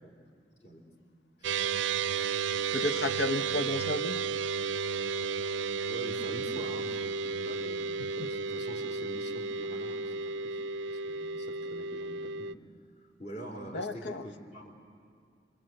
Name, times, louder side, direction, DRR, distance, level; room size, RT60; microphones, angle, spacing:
voice 1, 1.4-1.7 5.9-10.6 10.9-12.5 13.2-14.7, right 1 dB, 40° left, 2 dB, 3.6 m, -45 dB
sound 1, 1.4-12.5, right 5 dB, 85° right, 0.6 m, -33 dB
voice 2, 2.7-4.2 13.7-14.2, left 2 dB, 65° left, 10 dB, 0.9 m, -32 dB
27.0 x 25.5 x 7.8 m, 2.2 s
head